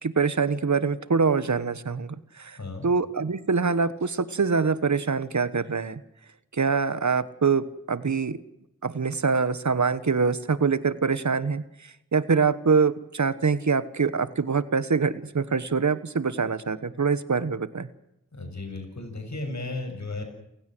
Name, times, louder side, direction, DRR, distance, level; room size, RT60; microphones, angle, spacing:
voice 1, 0.0-2.6 2.8-6.0 6.5-8.4 8.8-11.6 12.1-17.9, right 5 dB, 60° right, 15 dB, 1.3 m, -24 dB
voice 2, 2.5-2.9 18.3-20.2, left 2 dB, 55° left, 6 dB, 7.0 m, -34 dB
29.5 x 16.0 x 7.9 m, 0.84 s
wide cardioid pair, 75°, 32 cm